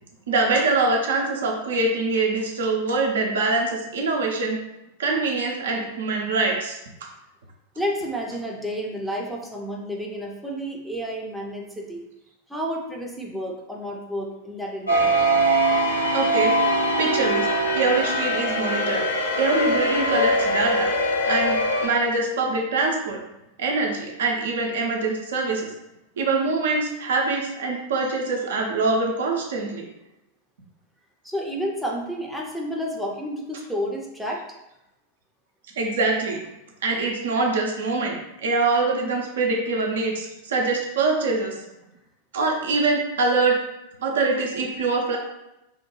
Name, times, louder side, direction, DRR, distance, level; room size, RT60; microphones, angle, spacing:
voice 1, 0.3-4.6 5.0-6.8 16.1-16.6 17.0-17.5 17.7-19.0 19.4-20.9 21.3-23.2 23.6-25.7 26.2-29.8 35.8-36.4 36.8-41.5 42.3-43.6 44.0-45.2, right 3 dB, 60° right, 0 dB, 0.5 m, -24 dB
voice 2, 7.8-12.0 12.5-15.2 31.2-34.4, equal, ahead, -2 dB, 0.5 m, -30 dB
sound 1, 14.9-21.9, equal, 75° left, 0.5 m, -22 dB
2.7 x 2.1 x 3.0 m, 0.90 s
figure-of-eight pair, 90°, 0 cm